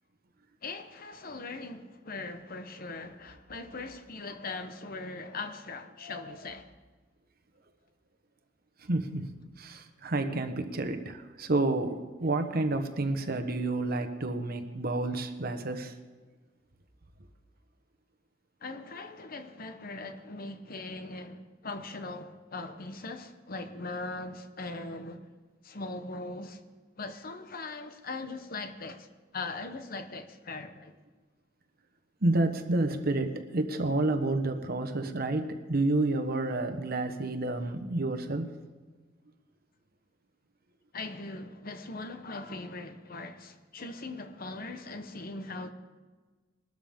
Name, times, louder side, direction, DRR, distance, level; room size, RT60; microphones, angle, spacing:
voice 1, 0.6-6.7 18.6-25.2 25.6-26.6 27.0-29.1 29.3-30.9 40.9-45.7, left 3 dB, 50° left, 1.0 m, -40 dB
voice 2, 8.9-15.9 32.2-38.5, right 2 dB, 55° right, 1.1 m, -30 dB
20.5 x 13.0 x 3.6 m
head